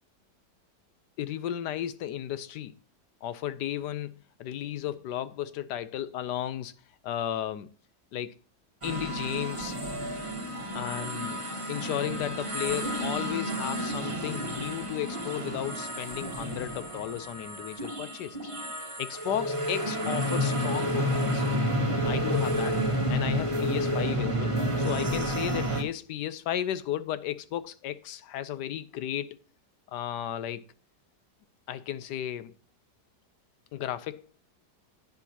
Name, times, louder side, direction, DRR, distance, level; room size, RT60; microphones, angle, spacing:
voice 1, 1.2-2.7 3.2-6.7 7.0-7.7 8.1-8.3 8.8-9.8 10.7-11.4 11.7-18.4 19.0-21.4 22.0-22.8 23.1-29.4 29.9-30.6 31.7-32.5 33.7-34.2, left 11 dB, 85° left, 1.3 m, -34 dB
sound 1, 8.8-25.8, equal, 20° right, 1.2 m, -30 dB
10.5 x 9.9 x 2.9 m
omnidirectional pair, 1.8 m